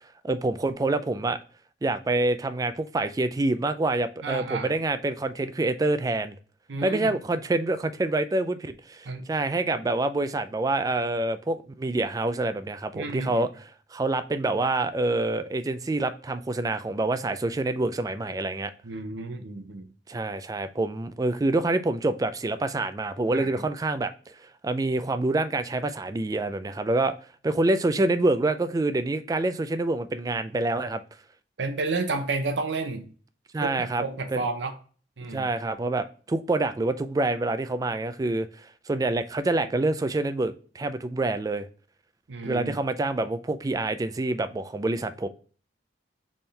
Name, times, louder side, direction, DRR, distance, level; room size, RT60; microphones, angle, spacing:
voice 1, 0.2-1.4 1.8-6.3 6.8-18.7 20.1-24.1 24.6-27.1 27.4-31.0 33.5-34.0 34.3-34.4 35.3-38.5 38.9-41.7 42.4-45.3, right 2 dB, 20° right, 0.3 m, -26 dB
voice 2, 4.2-4.7 6.7-7.1 9.1-9.2 12.9-13.5 18.8-19.9 23.3-23.6 31.6-33.1 33.6-34.7 35.2-35.5 42.3-42.8, right 3 dB, 75° right, 0.7 m, -31 dB
4.3 x 3.6 x 3.2 m
head